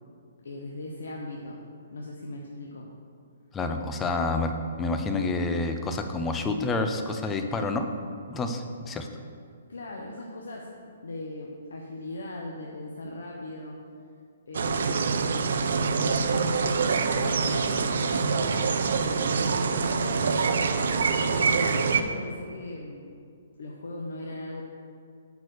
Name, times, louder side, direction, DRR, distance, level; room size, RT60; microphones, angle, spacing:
voice 1, 0.4-1.6 1.9-2.9 9.7-10.7 11.0-13.8 14.5-15.1 15.8-18.9 19.3-20.3 21.2-23.0 23.6-24.6, left 2 dB, 80° left, -1 dB, 1.0 m, -38 dB
voice 2, 3.5-7.9 8.3-9.1, left 3 dB, 15° left, 6 dB, 0.6 m, -28 dB
sound 1, 14.5-22.0, right 5 dB, 70° right, 0.6 m, -25 dB
8.2 x 4.8 x 6.6 m, 2.3 s
hypercardioid pair, 150°, 0 cm